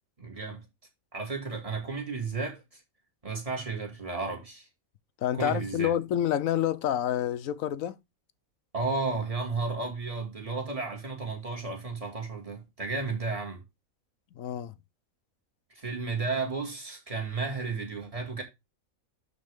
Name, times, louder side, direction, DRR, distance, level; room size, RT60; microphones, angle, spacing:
voice 1, 0.2-0.7 1.1-2.8 3.2-4.7 5.3-5.9 8.7-13.6 15.7-18.4, right 4 dB, 25° right, 2.1 m, -33 dB
voice 2, 5.2-8.0 14.4-14.7, left 11 dB, 70° left, 1.0 m, -28 dB
11.5 x 4.1 x 3.5 m
omnidirectional pair, 1.5 m